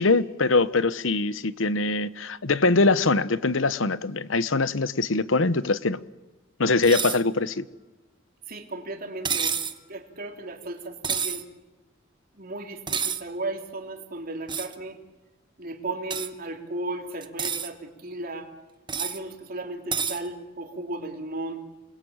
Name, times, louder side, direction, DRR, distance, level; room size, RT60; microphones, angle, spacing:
voice 1, 0.0-6.0 6.6-7.7, left 3 dB, 75° left, 1.0 m, -23 dB
sound 1, 6.8-7.2 9.2-9.8 11.0-11.4 12.9-13.2 14.5-14.7 16.1-16.3 17.2-17.7 18.9-19.2 19.9-20.2, right 6 dB, 25° right, 1.1 m, -28 dB
voice 2, 8.5-9.5 9.9-11.4 12.3-15.0 15.6-18.5 19.0-21.7, right 2 dB, 50° right, 3.3 m, -35 dB
28.5 x 21.5 x 8.9 m
head